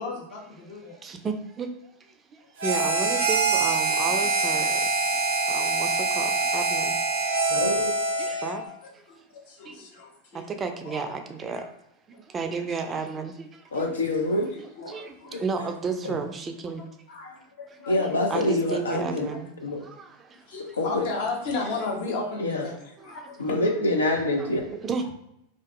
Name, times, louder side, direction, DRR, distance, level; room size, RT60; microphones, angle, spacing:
voice 1, 0.0-1.0 4.0-4.1 5.1-5.2 6.4-6.6 7.2-7.3 8.7-8.8 9.1-10.5 10.8-11.1 11.6-11.7 13.8-13.9 14.3-15.4 15.6-15.7 17.1-17.4 17.8-18.0 19.3-19.4 20.5-22.7 23.0-23.3, left 3 dB, 60° left, -1 dB, 0.8 m, -35 dB
voice 2, 0.6-1.7 2.0-4.9 5.4-7.0 8.2-8.6 8.9-9.0 9.6-9.9 10.3-11.7 12.3-13.7 14.4-14.5 14.9-16.8 17.9-19.5 19.8-20.5 21.0-21.1 23.0-23.3 24.1-24.5 24.8-25.1, right 4 dB, 25° right, 6 dB, 0.3 m, -33 dB
Harmonica, 2.6-8.6, right 3 dB, 80° right, 0.5 m, -24 dB
voice 3, 7.5-7.9 13.7-14.5 14.8-15.0 15.3-15.4 16.0-16.2 17.9-19.3 19.6-19.8 20.7-21.1 22.4-22.7 23.4-24.6, left 1 dB, 90° left, 1 dB, 0.4 m, -26 dB
2.5 x 2.5 x 2.4 m, 0.80 s
hypercardioid pair, 95°, 0 cm